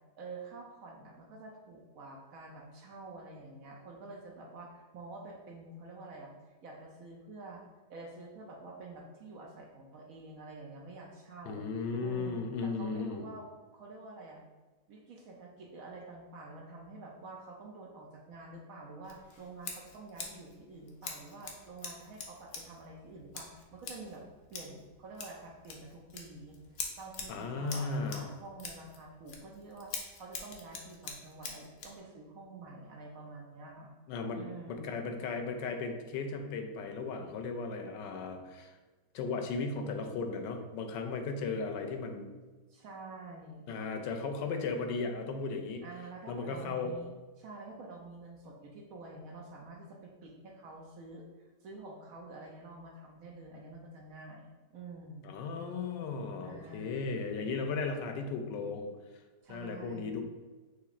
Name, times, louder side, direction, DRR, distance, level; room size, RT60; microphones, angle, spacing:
voice 1, 0.2-6.3 6.6-7.6 7.9-11.7 12.0-14.4 14.9-24.2 24.5-26.6 27.0-33.9 34.3-35.0 42.7-43.6 45.8-51.2 51.6-55.4 56.4-57.1 59.4-60.2, right 3 dB, 65° right, 0 dB, 0.9 m, -48 dB
voice 2, 11.5-13.3 27.3-28.2 34.1-38.8 39.1-42.3 43.7-45.8 46.3-46.9 55.2-58.9 59.5-60.2, left 4 dB, 90° left, 5 dB, 1.3 m, -36 dB
Scissors, 19.0-32.0, left 5 dB, 65° left, 1.1 m, -46 dB
6.0 x 3.2 x 2.4 m, 1.3 s
omnidirectional pair, 1.9 m